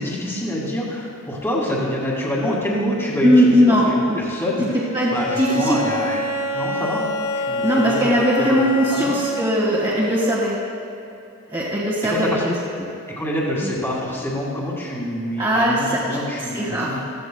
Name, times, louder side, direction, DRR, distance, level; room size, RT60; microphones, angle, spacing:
voice 1, 0.0-4.8 5.1-6.2 6.5-7.0 7.3-8.6 8.9-9.1 12.1-12.5 13.1-17.0, left 1 dB, 10° left, -5 dB, 2.1 m, -26 dB
voice 2, 3.2-4.2 4.9-5.8 7.6-10.6 11.5-12.5 13.6-13.7 15.4-16.2 16.5-16.9, equal, 20° right, -8 dB, 1.8 m, -19 dB
Bowed string instrument, 5.1-9.5, left 1 dB, 90° left, 2.0 m, -26 dB
16.5 x 14.5 x 2.3 m, 2.7 s
head